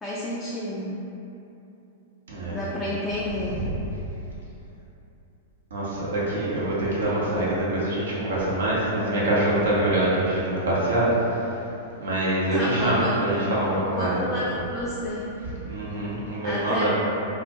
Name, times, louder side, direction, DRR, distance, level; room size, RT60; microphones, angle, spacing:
voice 1, 0.0-1.0 2.5-3.6 12.5-13.2 14.0-15.2 16.4-16.9, left 1 dB, 10° left, -7 dB, 0.3 m, -30 dB
voice 2, 2.3-2.6 3.5-3.7 5.7-11.5 12.0-14.4 15.4-16.9, right 1 dB, 70° right, -7 dB, 0.7 m, -25 dB
2.3 x 2.1 x 2.8 m, 2.9 s
figure-of-eight pair, 100°, 0 cm